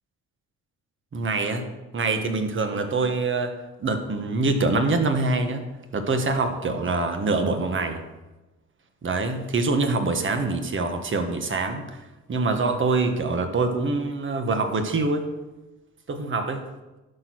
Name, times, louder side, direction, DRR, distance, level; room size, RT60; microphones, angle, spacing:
voice 1, 1.1-1.7 1.9-3.5 3.8-5.6 5.9-8.0 9.0-11.8 12.3-15.3 16.1-16.6, right 3 dB, 40° right, 6 dB, 1.4 m, -24 dB
11.5 x 4.6 x 6.2 m, 1.1 s
cardioid pair, 90°, 30 cm